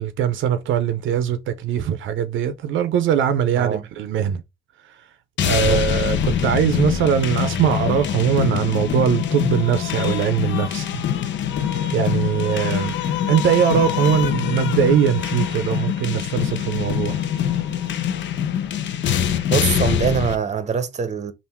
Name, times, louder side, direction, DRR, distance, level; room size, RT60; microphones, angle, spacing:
voice 1, 0.0-4.4 5.4-11.0 11.9-13.0 13.3-17.2, right 8 dB, 75° right, 0.5 m, -21 dB
voice 2, 3.5-3.8 5.5-5.8 19.5-21.3, right 7 dB, 35° right, 0.8 m, -23 dB
sound 1, 5.4-20.4, left 9 dB, 65° left, 0.6 m, -24 dB
3.5 x 2.5 x 4.2 m
cardioid pair, 90°, 20 cm